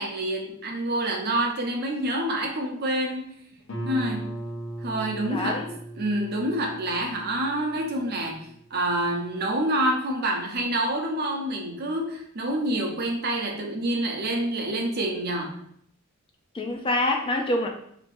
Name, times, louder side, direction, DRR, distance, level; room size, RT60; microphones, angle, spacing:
voice 1, 0.0-3.3 3.9-4.4 4.8-5.7 6.0-15.5, right 1 dB, 50° right, 1 dB, 0.7 m, -27 dB
Guitar, 3.7-9.1, right 1 dB, 65° left, 1.0 m, -38 dB
voice 2, 5.3-5.7 16.5-17.7, left 1 dB, 25° left, 2 dB, 0.4 m, -26 dB
2.9 x 2.6 x 4.2 m, 0.68 s
head